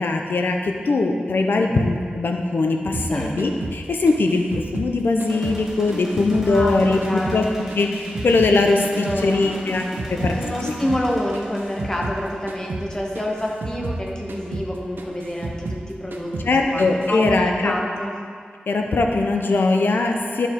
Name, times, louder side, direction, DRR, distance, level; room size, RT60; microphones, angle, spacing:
voice 1, 0.0-7.4 7.7-10.3 16.4-17.7 18.7-20.5, left 3 dB, 85° left, 3 dB, 0.7 m, -21 dB
sound 1, 2.9-5.6 5.9-8.6 8.8-12.2 12.5-12.9 13.1-15.9 16.1-16.5 16.8-17.4, right 2 dB, 85° right, 0.7 m, -32 dB
sound 2, 5.3-13.1, equal, 10° right, 1.7 m, -35 dB
voice 2, 6.4-7.5 9.0-9.8 10.1-18.1, left 1 dB, 20° left, -2 dB, 1.1 m, -28 dB
10.5 x 4.5 x 3.7 m, 2.1 s
wide cardioid pair, 80°, 3 cm